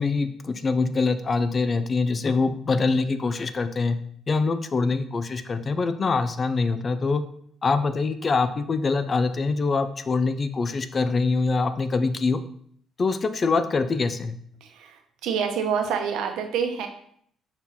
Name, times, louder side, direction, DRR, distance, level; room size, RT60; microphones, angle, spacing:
voice 1, 0.0-4.0 4.3-7.2 7.6-12.4 13.0-14.3, left 4 dB, 30° left, 10 dB, 0.5 m, -24 dB
voice 2, 14.6-16.9, right 7 dB, 85° right, 5 dB, 1.0 m, -27 dB
5.4 x 4.4 x 4.3 m, 0.63 s
cardioid pair, 125°, 0 cm